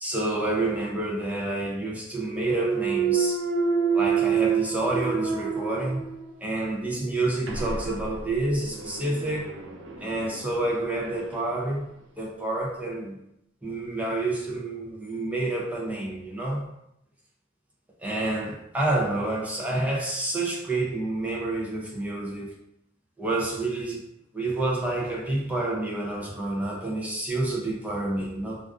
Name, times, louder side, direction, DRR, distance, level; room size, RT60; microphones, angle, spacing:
voice 1, 0.0-3.4 3.9-6.0 6.4-9.5 10.0-11.9 12.2-13.2 13.6-16.7 18.0-22.6 23.2-24.0 24.3-28.6, right 2 dB, 10° right, -3 dB, 0.4 m, -28 dB
Thump thud, 2.3-6.3 6.8-11.5, right 6 dB, 70° right, 0.4 m, -28 dB
sound 1, 2.5-4.7 6.9-8.4, left 4 dB, 50° right, 0.8 m, -44 dB
2.4 x 2.3 x 2.3 m, 0.80 s
head